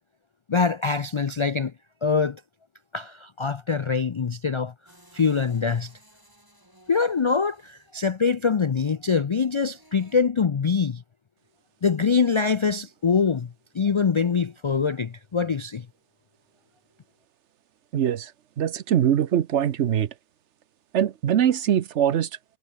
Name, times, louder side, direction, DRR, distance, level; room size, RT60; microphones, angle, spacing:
voice 1, 0.5-1.7 2.0-2.4 2.9-4.7 5.1-5.9 6.9-11.0 11.8-15.9, left 5 dB, 50° left, 0.3 m, -24 dB
sound 1, 4.9-8.2 9.6-10.2, right 1 dB, 15° right, 4.4 m, -57 dB
voice 2, 17.9-18.3 18.6-20.1 20.9-22.3, right 10 dB, 75° right, 1.1 m, -22 dB
omnidirectional pair, 1.2 m